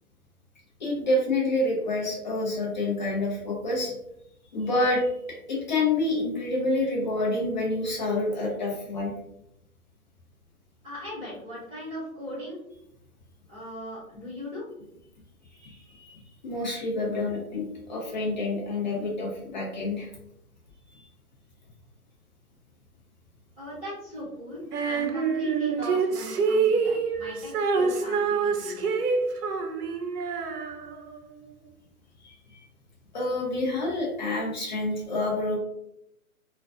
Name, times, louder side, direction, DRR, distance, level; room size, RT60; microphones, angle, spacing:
voice 1, 0.8-3.9 4.5-5.1 5.5-9.1 15.5-20.1 20.9-21.1 32.2-32.3 33.1-35.6, left 2 dB, 30° left, -2 dB, 0.6 m, -28 dB
voice 2, 10.8-12.6 13.5-14.6 23.6-29.1, left 1 dB, 10° right, -16 dB, 0.8 m, -39 dB
Female singing, 24.7-31.2, right 5 dB, 80° right, 0.6 m, -26 dB
2.4 x 2.2 x 2.3 m, 0.80 s
figure-of-eight pair, 145°, 45 cm